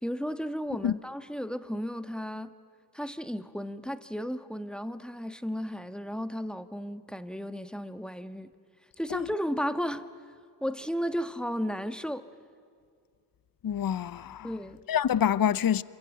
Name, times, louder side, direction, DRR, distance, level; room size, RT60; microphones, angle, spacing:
voice 1, 0.0-2.5 2.9-8.5 9.0-10.1 10.6-12.3 14.4-14.8, equal, ahead, 1.3 m, -34 dB
voice 2, 13.6-14.5 14.9-15.8, left 9 dB, 60° left, 0.7 m, -26 dB
27.0 x 24.0 x 9.3 m
cardioid pair, 50°, 40 cm